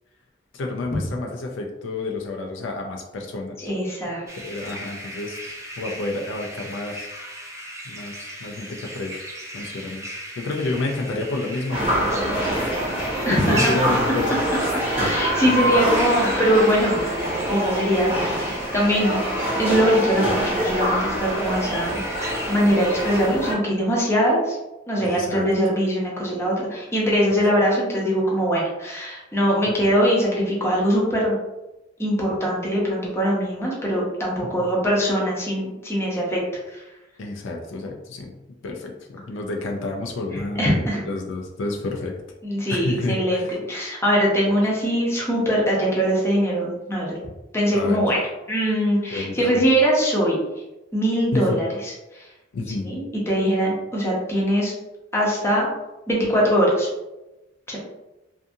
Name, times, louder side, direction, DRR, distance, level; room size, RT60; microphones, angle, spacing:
voice 1, 0.5-3.7 4.4-7.1 7.8-9.3 9.5-10.1 10.4-12.6 13.0-15.0 15.4-15.8 25.0-25.5 27.3-27.4 34.6-34.7 37.2-38.3 38.6-40.7 41.1-42.2 42.7-43.6 47.7-48.0 49.1-49.6 51.3-51.6 52.5-52.9, left 2 dB, 70° left, 1 dB, 0.4 m, -30 dB
voice 2, 3.6-4.2 13.3-13.7 14.3-14.4 15.0-17.0 17.5-19.3 19.6-22.0 22.5-24.6 24.9-31.4 32.0-36.4 36.7-36.8 40.6-41.0 42.4-47.1 47.5-48.2 48.5-50.4 50.9-52.3 52.8-54.7 55.1-55.7 56.1-56.9 57.7-57.8, equal, 15° left, -4 dB, 0.7 m, -22 dB
sound 1, 4.3-23.3, equal, 15° right, 0.3 m, -36 dB
sound 2, 11.7-23.6, equal, 35° right, 0.8 m, -25 dB
2.6 x 2.4 x 2.6 m, 1.0 s
head